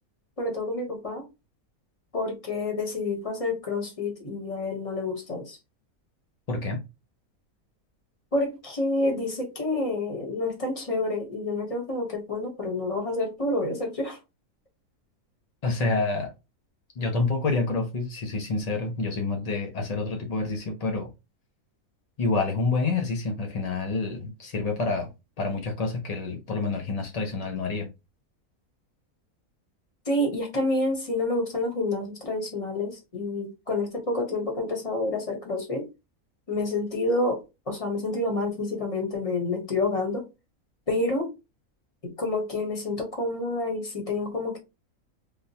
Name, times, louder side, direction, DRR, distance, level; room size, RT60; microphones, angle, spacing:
voice 1, 0.4-1.2 2.1-5.6 8.3-14.2 30.1-35.8 36.5-40.2 40.9-41.3 42.0-44.6, left 2 dB, 30° left, 0.9 m, -28 dB
voice 2, 6.5-6.8 15.6-16.3 17.0-21.1 22.2-25.1 25.4-27.9, left 3 dB, 65° left, 0.4 m, -28 dB
3.6 x 2.3 x 2.6 m
omnidirectional pair, 1.5 m